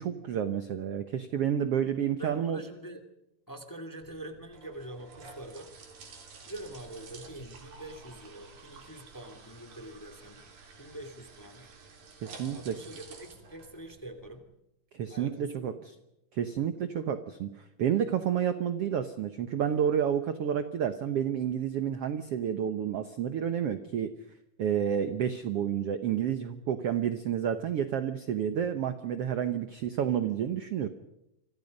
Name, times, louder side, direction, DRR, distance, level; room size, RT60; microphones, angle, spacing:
voice 1, 0.0-2.6 12.2-12.8 14.9-15.9 16.3-17.5 17.8-24.1 24.6-30.9, right 9 dB, 65° right, 9 dB, 1.6 m, -30 dB
voice 2, 1.8-3.0 3.5-5.7 6.5-10.4 10.8-11.6 12.5-14.5 15.1-15.8, right 1 dB, 5° left, 6 dB, 1.9 m, -45 dB
Pouring a glass of water, 4.0-14.4, right 4 dB, 80° right, 5.2 m, -51 dB
27.5 x 26.0 x 5.4 m, 0.87 s
omnidirectional pair, 3.9 m